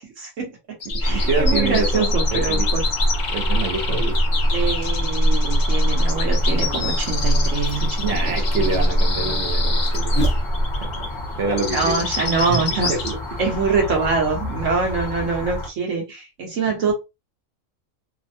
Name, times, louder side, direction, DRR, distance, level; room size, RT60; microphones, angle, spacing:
voice 1, 0.2-0.8 1.0-2.8 4.5-8.3 11.7-12.9 13.4-16.9, right 4 dB, 80° right, 1.4 m, -24 dB
sound 1, 0.8-13.1, left 4 dB, 70° left, 1.1 m, -29 dB
Buzz, 0.9-10.9, equal, 10° left, 0.8 m, -22 dB
voice 2, 0.9-2.7 3.3-4.2 8.0-10.2 10.8-11.1 11.4-12.0 12.5-12.6 12.9-13.2 15.2-15.3, right 4 dB, 60° right, 1.0 m, -26 dB
sound 2, 1.0-15.7, left 1 dB, 40° left, 1.2 m, -32 dB
3.3 x 2.1 x 2.6 m
omnidirectional pair, 1.3 m